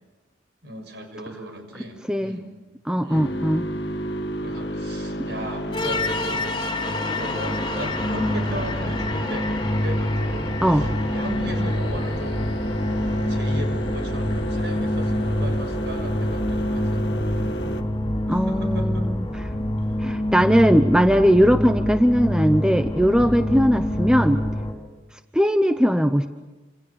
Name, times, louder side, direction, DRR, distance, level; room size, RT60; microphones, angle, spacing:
voice 1, 0.6-2.6 3.0-3.4 4.4-6.6 7.0-12.5 12.9-17.4 18.3-19.1 19.8-20.0 23.2-23.4, right 1 dB, 65° right, 6 dB, 6.4 m, -37 dB
voice 2, 2.1-2.4 2.9-3.7 10.6-10.9 18.3-19.2 20.0-24.4 25.3-26.3, equal, 5° right, 8 dB, 0.9 m, -19 dB
sound 1, 3.1-17.8, equal, 65° left, 1.8 m, -31 dB
sound 2, 5.7-24.7, left 1 dB, 25° left, 4.6 m, -26 dB
29.0 x 27.5 x 7.0 m, 1.1 s
head